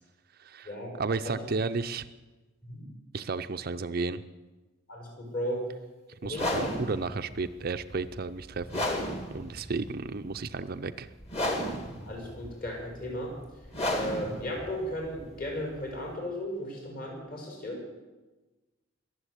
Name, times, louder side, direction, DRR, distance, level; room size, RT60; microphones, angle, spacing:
voice 1, 0.4-2.1 3.1-4.2 6.2-11.1, right 4 dB, 45° right, 10 dB, 0.5 m, -33 dB
voice 2, 4.9-5.6 6.2-6.7 12.0-13.3 14.0-17.8, equal, 45° left, -2 dB, 6.1 m, -35 dB
sound 1, 6.3-16.1, left 1 dB, 30° left, 2.2 m, -34 dB
22.0 x 7.8 x 8.2 m, 1.2 s
head